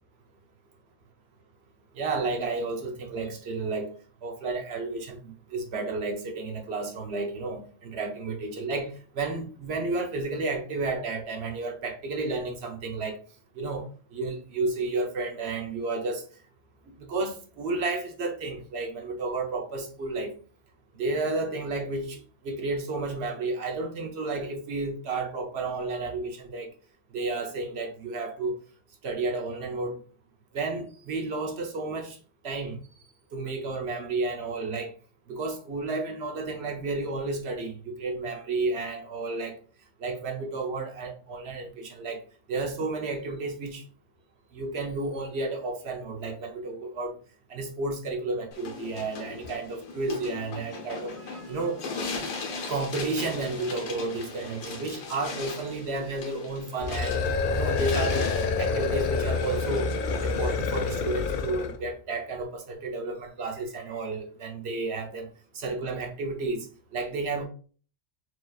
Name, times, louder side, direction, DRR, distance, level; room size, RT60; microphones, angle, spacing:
voice 1, 1.9-4.0 4.2-13.2 13.5-16.2 17.0-20.3 20.9-26.7 27.1-28.6 29.0-30.0 30.5-32.2 32.4-32.8 33.3-34.9 35.3-39.6 40.0-42.2 42.5-43.8 44.5-47.1 47.5-51.8 52.7-58.3 58.6-60.0 60.2-65.3 65.5-66.7 66.9-67.5, right 3 dB, 60° right, 1.1 m, -32 dB
sound 1, 48.5-61.5, left 4 dB, 85° left, 1.3 m, -39 dB
sound 2, 56.8-61.8, left 4 dB, 60° left, 0.5 m, -27 dB
4.7 x 3.0 x 2.3 m
omnidirectional pair, 1.3 m